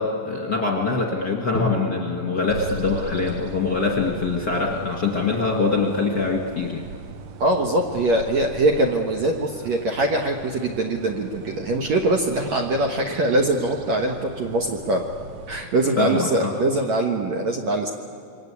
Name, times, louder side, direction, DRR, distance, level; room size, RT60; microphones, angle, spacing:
voice 1, 0.0-6.8 16.0-16.5, left 4 dB, 35° left, 0 dB, 1.9 m, -24 dB
Drum, 1.5-5.5, left 3 dB, 55° left, 0.6 m, -34 dB
sound 1, 2.5-15.6, right 4 dB, 80° right, 1.6 m, -40 dB
voice 2, 7.4-15.0 15.5-17.9, right 2 dB, 55° right, 2 dB, 2.1 m, -22 dB
27.5 x 23.5 x 8.5 m, 2.5 s
omnidirectional pair, 4.8 m